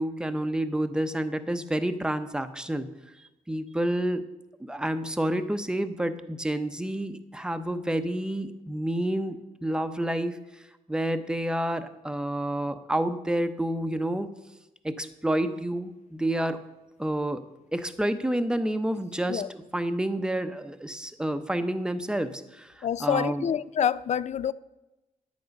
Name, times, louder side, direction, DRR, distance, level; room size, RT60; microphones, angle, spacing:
voice 1, 0.0-2.9 3.5-4.3 4.6-10.4 10.9-14.3 14.8-16.6 17.0-17.4 17.7-23.5, right 1 dB, 5° right, 0.8 m, -29 dB
voice 2, 22.8-24.5, left 8 dB, 55° left, 0.4 m, -27 dB
10.5 x 8.6 x 5.3 m
cardioid pair, 95°, 14 cm